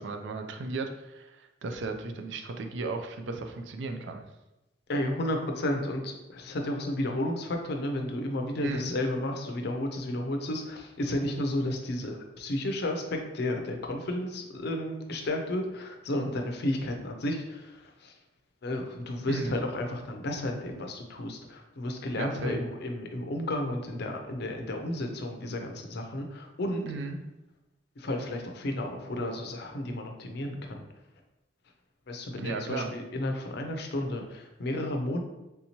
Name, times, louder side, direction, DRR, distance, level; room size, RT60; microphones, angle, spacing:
voice 1, 0.0-4.2 8.6-9.0 19.3-19.6 22.1-22.6 26.9-27.2 32.4-32.9, right 3 dB, 70° right, 5 dB, 0.4 m, -35 dB
voice 2, 4.9-18.1 18.6-26.9 28.0-30.9 32.1-35.2, left 1 dB, 60° left, 3 dB, 0.5 m, -32 dB
3.4 x 2.8 x 2.9 m, 0.97 s
head